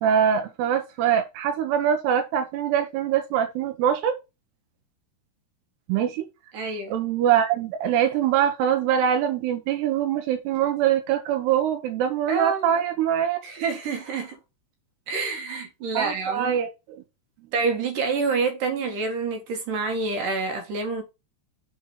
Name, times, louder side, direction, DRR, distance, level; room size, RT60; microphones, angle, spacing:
voice 1, 0.0-4.1 5.9-6.3 6.9-13.4 15.9-16.7, right 9 dB, 85° right, 2.9 m, -23 dB
voice 2, 6.5-7.0 12.3-12.8 13.4-14.4 15.1-16.5 17.5-21.0, right 4 dB, 65° right, 2.5 m, -27 dB
6.4 x 4.5 x 5.4 m
omnidirectional pair, 4.7 m